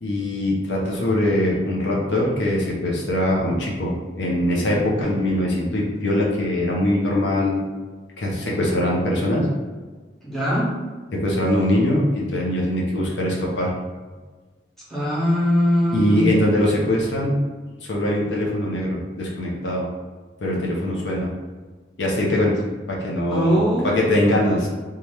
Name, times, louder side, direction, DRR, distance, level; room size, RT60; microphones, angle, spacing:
voice 1, 0.0-7.6 8.2-9.5 11.1-13.7 15.9-17.4 17.8-19.9 20.4-21.3 22.0-22.6 22.9-24.7, left 1 dB, 75° left, -3 dB, 0.7 m, -22 dB
voice 2, 10.2-10.7 14.9-16.3 23.3-24.0, equal, ahead, -8 dB, 0.9 m, -21 dB
2.8 x 2.3 x 3.3 m, 1.3 s
head